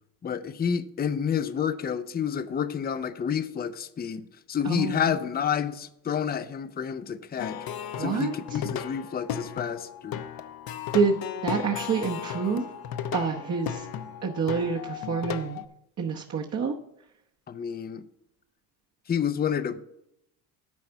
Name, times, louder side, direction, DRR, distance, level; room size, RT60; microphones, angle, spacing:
voice 1, 0.2-7.6 8.0-10.2 17.5-18.0 19.1-19.8, left 8 dB, 20° left, 0.6 m, -29 dB
voice 2, 4.7-5.0 8.0-8.3 10.9-11.2 11.4-12.6 13.1-13.8 14.2-15.6 16.0-16.7, right 5 dB, 35° right, 1.0 m, -27 dB
Plucked string instrument, 7.4-15.7, left 9 dB, 50° left, 0.8 m, -35 dB
11.0 x 4.2 x 6.9 m
supercardioid pair, 85°, 49 cm